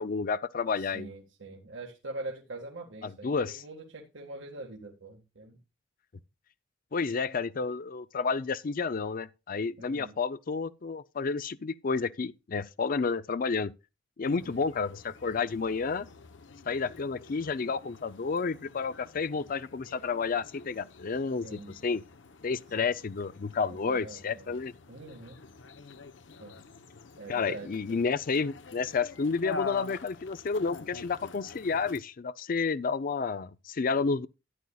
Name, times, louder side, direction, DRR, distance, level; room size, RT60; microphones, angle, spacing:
voice 1, 0.0-1.1 3.0-3.6 6.9-13.7 14.2-16.1 16.7-22.0 22.4-24.7 27.3-34.3, left 5 dB, 50° left, 0.5 m, -30 dB
voice 2, 0.7-5.6 9.8-10.2 14.2-14.6 21.4-21.8 22.8-22.9 23.7-24.5 24.9-25.4 26.4-26.6 27.2-28.0, right 2 dB, 90° right, 1.8 m, -44 dB
sound 1, 14.2-32.0, left 5 dB, 80° left, 0.8 m, -46 dB
13.5 x 9.8 x 2.3 m
head